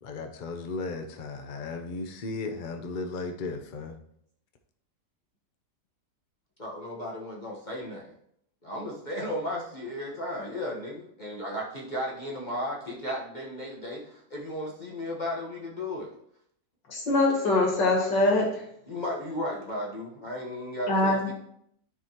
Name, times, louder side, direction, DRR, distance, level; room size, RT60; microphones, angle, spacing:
voice 1, 0.0-4.0, left 3 dB, 55° left, 6 dB, 0.5 m, -35 dB
voice 2, 6.6-8.1 8.6-16.1 18.9-21.3, left 1 dB, 30° left, -4 dB, 1.2 m, -35 dB
voice 3, 16.9-18.6 20.9-21.3, left 2 dB, 90° left, -1 dB, 2.6 m, -23 dB
13.0 x 4.9 x 2.9 m, 0.73 s
omnidirectional pair, 1.9 m